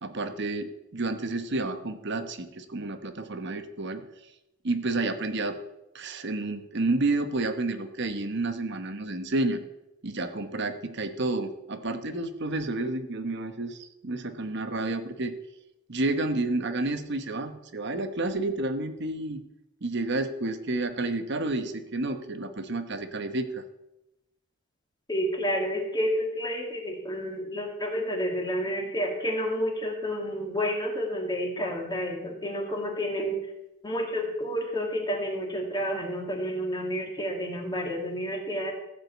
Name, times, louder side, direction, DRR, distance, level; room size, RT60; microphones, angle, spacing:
voice 1, 0.0-4.0 4.6-5.6 5.9-9.7 10.0-15.3 15.9-19.4 19.8-23.6, right 2 dB, 55° right, 9 dB, 1.0 m, -30 dB
voice 2, 25.1-33.4 33.8-38.7, equal, 20° left, 1 dB, 2.1 m, -30 dB
15.0 x 5.1 x 8.2 m, 0.92 s
head